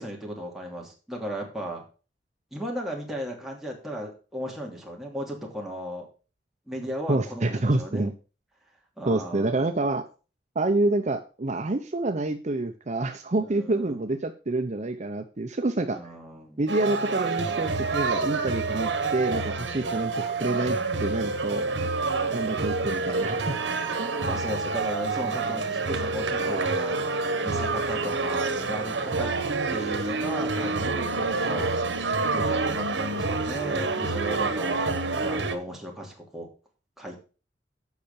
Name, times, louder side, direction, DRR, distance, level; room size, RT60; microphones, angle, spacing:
voice 1, 0.0-1.8 2.5-6.1 6.7-8.1 9.0-9.6 13.4-14.0 15.9-16.6 24.2-27.0 27.4-29.3 29.7-31.7 32.3-34.9 35.2-36.5 37.0-37.2, equal, ahead, -1 dB, 2.7 m, -35 dB
voice 2, 7.1-8.1 9.1-10.0 10.6-16.0 16.6-21.8 22.3-23.6 24.0-24.1, right 2 dB, 40° right, 6 dB, 0.7 m, -27 dB
sound 1, 16.7-35.6, right 3 dB, 85° right, 1.3 m, -28 dB
8.2 x 5.8 x 6.8 m, 0.35 s
head